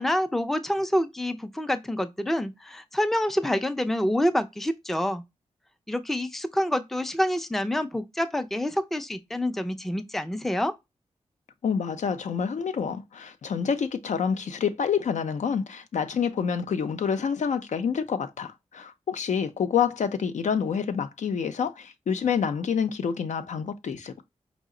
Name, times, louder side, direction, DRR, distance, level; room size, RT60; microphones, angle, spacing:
voice 1, 0.0-5.2 5.9-10.7, left 1 dB, ahead, 0.4 m, -27 dB
voice 2, 11.6-24.2, left 7 dB, 75° left, 0.5 m, -27 dB
4.8 x 2.0 x 3.7 m
wide cardioid pair, 105°, 12 cm